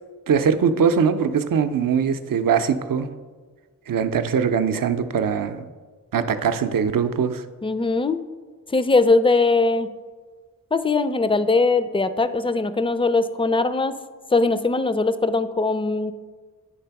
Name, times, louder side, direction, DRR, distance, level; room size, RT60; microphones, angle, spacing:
voice 1, 0.3-3.1 3.9-5.7 6.1-7.4, right 6 dB, 70° right, 9 dB, 0.5 m, -21 dB
voice 2, 7.6-8.2 8.7-9.9 10.7-14.0 14.3-16.1, left 3 dB, 15° left, 12 dB, 0.4 m, -20 dB
9.3 x 3.3 x 5.7 m, 1.4 s
wide cardioid pair, 70°, 34 cm